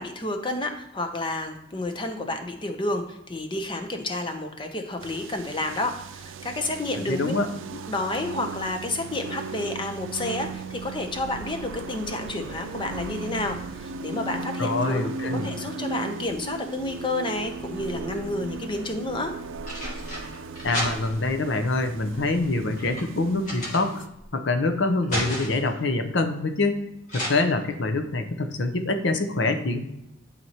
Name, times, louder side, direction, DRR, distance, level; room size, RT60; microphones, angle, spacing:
voice 1, 0.0-7.3 7.9-15.1 15.4-19.3, left 2 dB, 25° left, 5 dB, 0.7 m, -30 dB
sound 1, 5.0-24.1, right 3 dB, 90° right, 0.4 m, -37 dB
voice 2, 7.1-7.5 14.6-15.5 20.6-24.0 24.3-26.8 27.1-29.8, left 2 dB, 70° left, 7 dB, 0.7 m, -25 dB
sound 2, 17.6-18.4 19.2-21.4 22.1-24.3 24.7-25.7 27.1-27.3, equal, 40° left, 2.2 m, -34 dB
11.0 x 4.2 x 2.9 m, 0.87 s
head